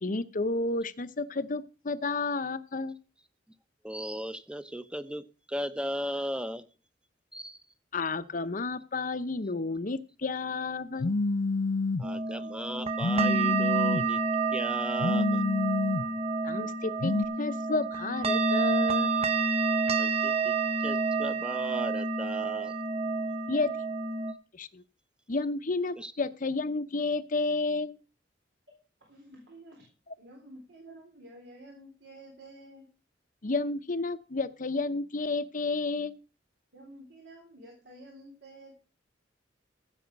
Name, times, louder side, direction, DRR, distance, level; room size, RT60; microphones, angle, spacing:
voice 1, 0.0-3.0 7.9-11.1 16.4-19.1 23.5-23.8 24.5-24.8 25.3-28.0 33.4-36.2, left 3 dB, 45° left, 12 dB, 0.8 m, -31 dB
voice 2, 3.8-6.7 7.3-7.6 12.0-14.2 14.5-15.4 20.0-20.5 20.8-22.8 26.0-26.1, equal, 5° right, 12 dB, 0.8 m, -36 dB
Telephone, 11.0-12.1 13.0-14.1 15.0-16.1 17.0-17.3, left 3 dB, 90° left, 0.8 m, -27 dB
sound 1, 12.0-24.3, right 4 dB, 35° right, 1.0 m, -29 dB
voice 3, 29.1-29.9 30.2-32.9 36.7-38.7, right 1 dB, 75° right, -1 dB, 3.9 m, -50 dB
15.5 x 7.2 x 5.3 m, 0.35 s
head